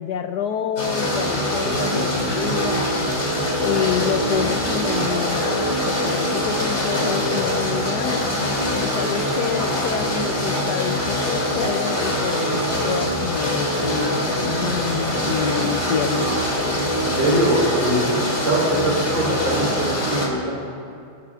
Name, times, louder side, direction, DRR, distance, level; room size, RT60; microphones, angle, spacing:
voice 1, 0.0-3.0 3.6-8.3 8.8-16.3, left 9 dB, 75° left, 7 dB, 0.9 m, -28 dB
sound 1, 0.8-20.3, equal, 35° left, 2.7 m, -23 dB
voice 2, 17.0-18.1 18.4-20.5, right 1 dB, 45° right, -3 dB, 4.6 m, -22 dB
25.0 x 16.0 x 2.4 m, 2.5 s
omnidirectional pair, 2.2 m